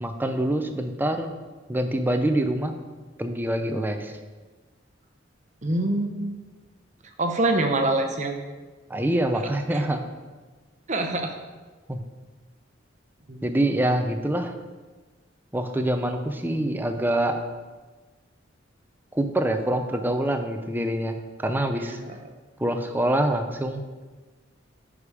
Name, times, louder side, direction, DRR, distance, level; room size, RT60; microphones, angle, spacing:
voice 1, 0.0-1.3 1.7-2.7 3.2-4.2 8.9-10.0 11.9-12.0 13.4-14.5 15.5-17.4 19.1-22.0 22.6-23.8, right 1 dB, 10° right, 6 dB, 0.6 m, -25 dB
voice 2, 5.6-6.3 7.2-8.3 10.9-11.3 13.3-13.4 21.8-22.2, right 2 dB, 40° right, 4 dB, 0.9 m, -25 dB
9.8 x 5.0 x 5.0 m, 1.3 s
head